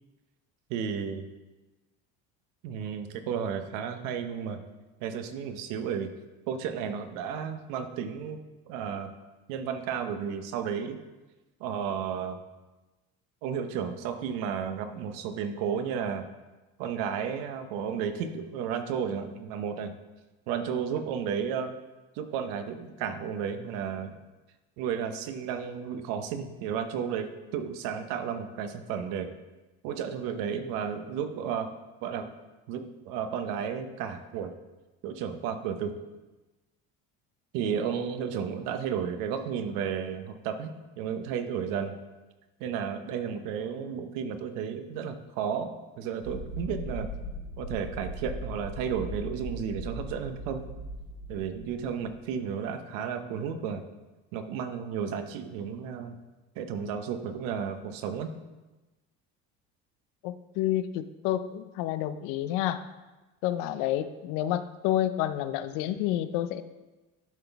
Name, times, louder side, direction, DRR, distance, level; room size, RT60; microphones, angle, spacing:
voice 1, 0.7-1.3 2.6-4.6 5.0-6.1 6.5-8.4 8.7-9.1 9.5-11.0 11.6-12.4 13.4-16.2 16.8-19.9 20.5-21.7 22.1-24.2 24.8-29.3 29.8-31.7 32.0-32.3 32.7-34.5 35.0-36.0 37.5-42.0 42.6-45.7 46.0-47.1 47.6-50.6 51.3-53.8 54.3-56.2 56.6-58.3, right 7 dB, 90° right, 8 dB, 0.8 m, -33 dB
sound 1, 46.2-52.3, right 1 dB, 65° right, 2.5 m, -39 dB
voice 2, 60.2-62.8 63.4-66.6, left 12 dB, 90° left, 12 dB, 0.5 m, -29 dB
11.5 x 4.0 x 3.4 m, 1.1 s
cardioid pair, 130°, 32 cm